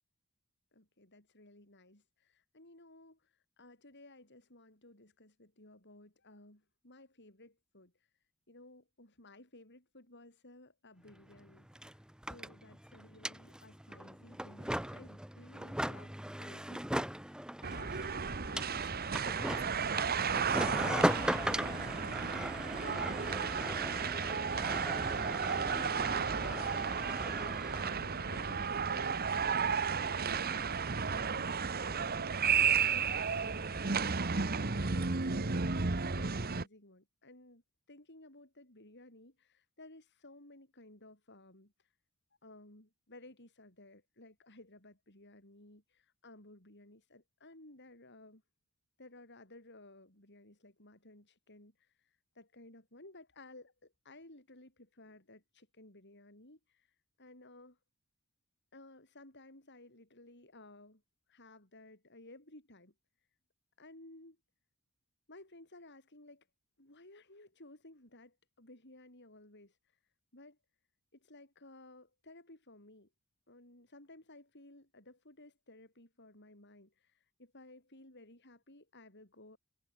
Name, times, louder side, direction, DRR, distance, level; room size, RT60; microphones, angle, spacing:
voice 1, 0.7-8.1 8.5-18.9 19.4-20.4 21.1-27.4 27.8-37.6 37.9-41.9 42.4-48.4 49.0-57.8 58.7-61.0 61.3-62.9 63.8-64.4 65.3-66.5 66.8-70.0 70.3-70.6 71.1-73.1 73.5-79.6, left 2 dB, 50° left, 7.4 m, -57 dB
sound 1, 11.1-11.2 11.4-28.0, right 1 dB, 5° right, 1.0 m, -38 dB
sound 2, 17.6-36.6, right 5 dB, 45° right, 1.2 m, -33 dB
head